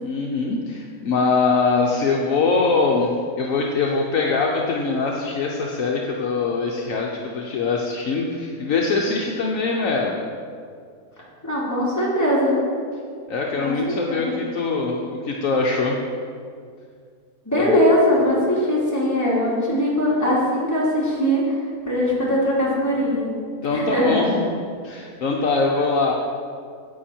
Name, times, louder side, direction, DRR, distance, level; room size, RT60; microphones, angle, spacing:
voice 1, 0.0-10.1 13.3-16.0 17.6-17.8 23.6-24.3 24.8-26.1, left 4 dB, 65° left, -1 dB, 1.1 m, -22 dB
voice 2, 11.4-12.6 13.6-14.4 17.4-21.4 21.9-23.3 23.7-24.4, equal, 10° left, -7 dB, 2.7 m, -21 dB
9.6 x 8.4 x 4.4 m, 2.2 s
omnidirectional pair, 1.6 m